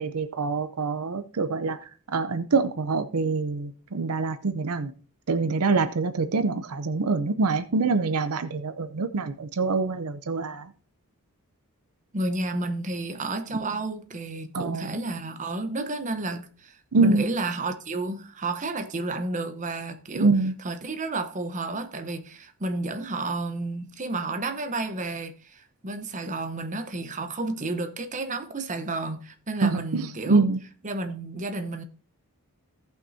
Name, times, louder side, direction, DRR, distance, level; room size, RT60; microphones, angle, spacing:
voice 1, 0.0-4.9 5.3-10.7 14.5-15.0 16.9-17.2 20.1-20.5 29.6-30.6, right 4 dB, 80° right, 0.6 m, -25 dB
voice 2, 12.1-20.3 20.6-30.5 30.8-31.8, right 2 dB, 35° right, 0.9 m, -31 dB
17.0 x 5.8 x 2.7 m
head